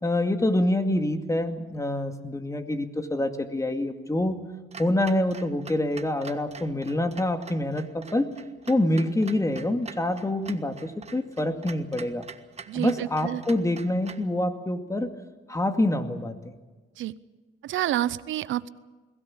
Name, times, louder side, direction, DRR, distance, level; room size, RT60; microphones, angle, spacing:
voice 1, 0.0-4.4 4.8-8.3 8.7-12.2 12.7-15.1 15.5-16.5, left 1 dB, 15° left, 7 dB, 2.2 m, -26 dB
Clock, 4.7-14.3, right 5 dB, 30° right, 1.4 m, -45 dB
voice 2, 12.7-13.4 17.0-17.1 17.6-18.7, right 13 dB, 80° right, 17 dB, 0.7 m, -28 dB
22.0 x 17.0 x 8.7 m, 1.3 s
cardioid pair, 90°, 20 cm